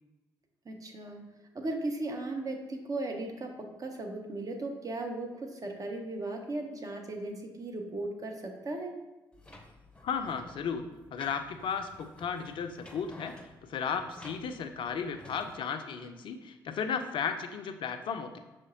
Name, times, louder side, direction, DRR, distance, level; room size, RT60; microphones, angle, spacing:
voice 1, 0.6-1.3 1.5-9.0, right 2 dB, 35° right, 3 dB, 0.8 m, -37 dB
sound 1, 9.3-15.5, left 1 dB, 10° left, 0.7 m, -53 dB
voice 2, 10.0-13.3 13.7-18.4, left 6 dB, 50° left, 7 dB, 0.5 m, -34 dB
5.0 x 3.1 x 2.8 m, 1.1 s
figure-of-eight pair, 40°, 10 cm